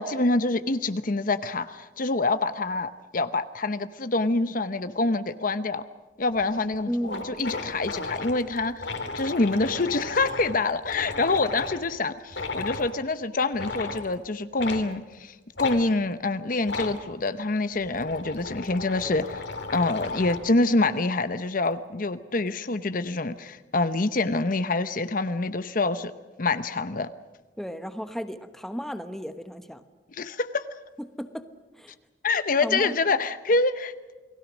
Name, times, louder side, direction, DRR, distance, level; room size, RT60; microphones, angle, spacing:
voice 1, 0.0-5.8 6.2-6.9 7.2-19.5 19.7-26.1 26.4-27.1 30.1-30.7 32.2-33.9, left 3 dB, 50° left, 12 dB, 0.9 m, -26 dB
sound 1, 6.4-6.5 6.7-6.8 7.0-11.8 12.3-12.9 13.5-14.1 14.6-14.8 15.6-15.8 16.6-17.0 17.7-20.5, left 3 dB, 75° left, 3.1 m, -34 dB
voice 2, 6.9-7.2 27.6-29.8 31.0-31.5 31.8-31.9 32.6-33.0, equal, ahead, 9 dB, 1.1 m, -34 dB
29.0 x 20.0 x 6.3 m, 1.2 s
head